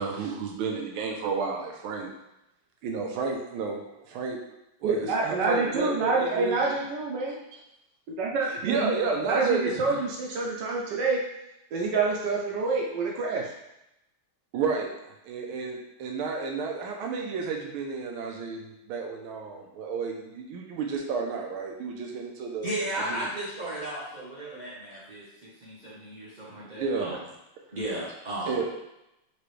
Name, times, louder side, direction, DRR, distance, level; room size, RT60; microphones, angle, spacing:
voice 1, 0.0-2.1 2.8-4.4 4.8-6.6 8.6-9.9 14.5-14.9 15.2-22.7 23.0-23.2 26.7-27.2 28.5-28.7, right 4 dB, 85° right, 1 dB, 1.5 m, -31 dB
voice 2, 4.8-7.3 8.1-11.2 11.7-13.5, right 3 dB, 65° right, -2 dB, 1.2 m, -27 dB
voice 3, 22.6-27.2 27.7-28.6, right 1 dB, 45° right, -8 dB, 0.5 m, -35 dB
4.7 x 3.0 x 3.1 m, 0.88 s
omnidirectional pair, 2.2 m